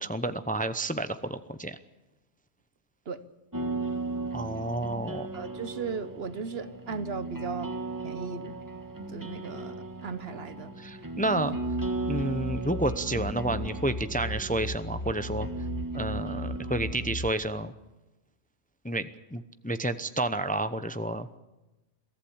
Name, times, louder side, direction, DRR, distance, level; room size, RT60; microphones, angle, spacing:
voice 1, 0.0-1.8 4.3-5.3 10.8-11.6 12.1-15.5 15.9-17.7 18.8-21.3, right 1 dB, 10° left, 11 dB, 0.7 m, -30 dB
sound 1, 3.5-17.2, right 2 dB, 20° right, 1.5 m, -36 dB
voice 2, 5.1-7.7 8.0-8.5 9.1-10.7, right 5 dB, 65° right, 13 dB, 1.3 m, -37 dB
sound 2, 11.5-17.3, left 1 dB, 45° left, 1.0 m, -37 dB
23.0 x 14.5 x 8.6 m, 1.0 s
omnidirectional pair, 1.1 m